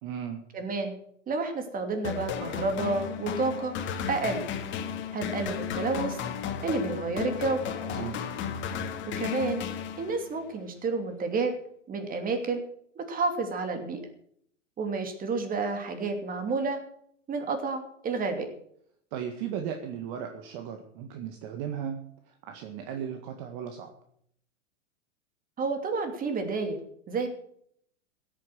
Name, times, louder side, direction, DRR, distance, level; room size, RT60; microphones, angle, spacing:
voice 1, 0.0-0.4 7.8-8.2 19.1-22.0 22.3-23.9, right 8 dB, 45° right, 5 dB, 1.8 m, -36 dB
voice 2, 0.5-0.9 1.3-3.7 4.1-4.5 5.1-6.2 6.6-7.6 9.2-9.6 10.0-11.6 11.9-12.6 13.0-14.0 14.8-16.8 17.3-18.5 25.6-26.8 27.1-27.3, right 3 dB, 25° right, 6 dB, 2.9 m, -30 dB
sound 1, 2.0-10.4, left 8 dB, 30° left, 2.1 m, -34 dB
16.5 x 9.1 x 6.5 m, 0.68 s
figure-of-eight pair, 100°, 36 cm